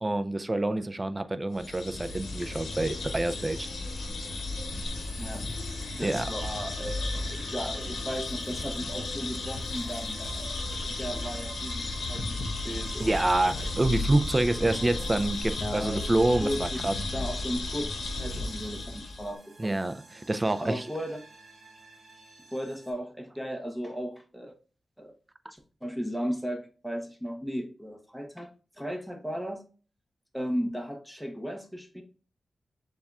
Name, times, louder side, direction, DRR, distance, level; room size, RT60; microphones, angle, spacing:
voice 1, 0.0-3.7 6.0-6.3 13.0-16.9 19.6-20.8, right 2 dB, 25° right, 11 dB, 0.3 m, -27 dB
sound 1, 1.5-19.3, left 2 dB, 80° left, 0.8 m, -34 dB
sound 2, 4.3-22.9, right 2 dB, 70° right, 1.0 m, -49 dB
voice 2, 5.9-10.6 10.8-13.1 13.5-13.7 15.6-19.7 20.6-21.2 22.5-24.5 25.0-25.1 25.5-28.5 28.8-29.6 30.3-32.0, equal, ahead, 3 dB, 0.8 m, -36 dB
sound 3, 10.2-16.4, right 1 dB, 30° left, 1.8 m, -46 dB
6.9 x 2.3 x 2.4 m, 0.37 s
cardioid pair, 75°, 0 cm